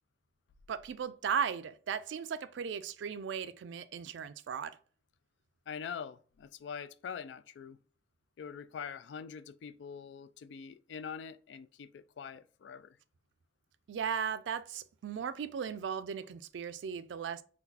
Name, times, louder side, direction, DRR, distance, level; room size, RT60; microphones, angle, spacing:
voice 1, 0.7-4.8 13.9-17.4, right 7 dB, 90° right, 0.3 m, -36 dB
voice 2, 5.7-7.8 8.4-13.0, left 7 dB, 75° left, 0.3 m, -44 dB
3.8 x 2.3 x 2.7 m
head